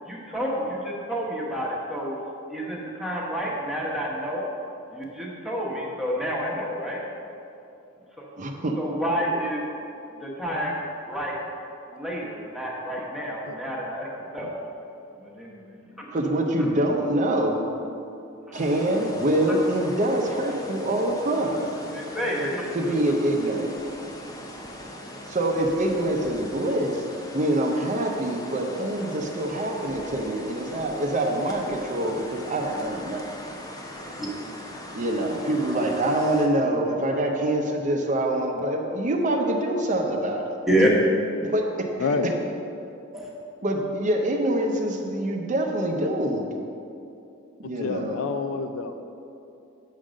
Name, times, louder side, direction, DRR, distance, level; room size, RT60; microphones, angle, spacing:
voice 1, 0.1-2.2 2.5-4.5 4.9-7.0 8.2-8.3 8.8-9.6 10.2-11.4 11.9-14.5 15.2-16.2 21.9-22.7 34.0-34.3 40.7-40.9 43.1-43.3, equal, ahead, -4 dB, 1.1 m, -29 dB
voice 2, 8.4-8.8 16.1-17.7 18.5-21.7 22.7-23.8 25.3-27.0 27.3-33.3 34.9-40.4 41.4-41.6 42.0-42.1 43.6-46.5 47.6-48.2, right 1 dB, 35° right, 2 dB, 0.6 m, -25 dB
sound 1, 18.5-36.5, left 1 dB, 20° left, 0.6 m, -40 dB
voice 3, 42.0-42.3 47.6-49.0, left 4 dB, 70° left, 8 dB, 0.4 m, -28 dB
7.3 x 3.8 x 6.3 m, 2.7 s
head